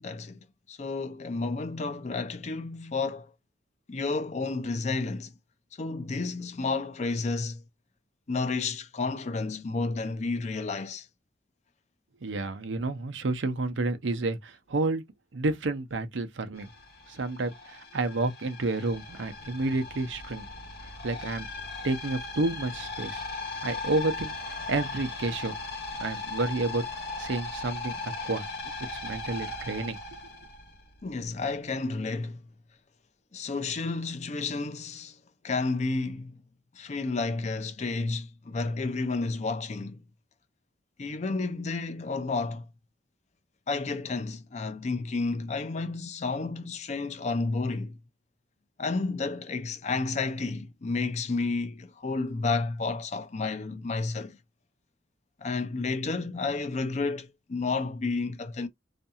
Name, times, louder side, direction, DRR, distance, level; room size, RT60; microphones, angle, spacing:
voice 1, 0.0-3.3 3.9-5.3 5.8-7.6 8.3-11.1 31.0-32.4 33.3-35.2 35.4-36.4 36.7-40.0 41.0-42.7 43.7-48.0 48.8-54.4 55.4-58.7, left 3 dB, 40° left, 0.5 m, -31 dB
voice 2, 12.2-15.0 15.3-16.7 17.1-20.4 21.0-21.5 21.8-23.2 23.6-24.3 24.7-25.5 26.0-26.8 27.2-28.4 29.0-30.0, right 2 dB, 85° right, 0.7 m, -30 dB
sound 1, 16.6-31.1, left 3 dB, 55° left, 1.0 m, -38 dB
2.6 x 2.3 x 2.7 m
head